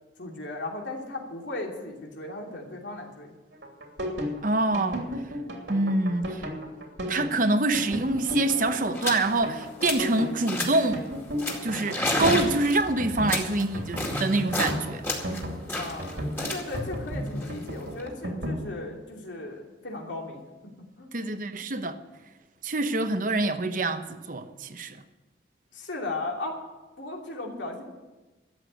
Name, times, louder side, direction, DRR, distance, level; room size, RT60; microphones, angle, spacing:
voice 1, 0.2-3.3 15.7-20.4 21.0-21.2 25.7-26.6 27.0-27.8, left 2 dB, 90° left, 2.9 m, -36 dB
sound 1, 3.5-18.6, equal, 80° right, 2.9 m, -34 dB
voice 2, 4.4-5.1 5.7-6.5 7.1-11.0 11.6-15.0 21.1-22.0 22.6-25.0, right 2 dB, 45° right, 0.9 m, -26 dB
sound 2, 7.9-8.0 8.2-8.5 8.9-9.3 9.6-10.1 10.5-10.9 11.4-14.8 15.0-18.1, left 1 dB, 15° left, 2.2 m, -31 dB
13.0 x 8.2 x 9.3 m
head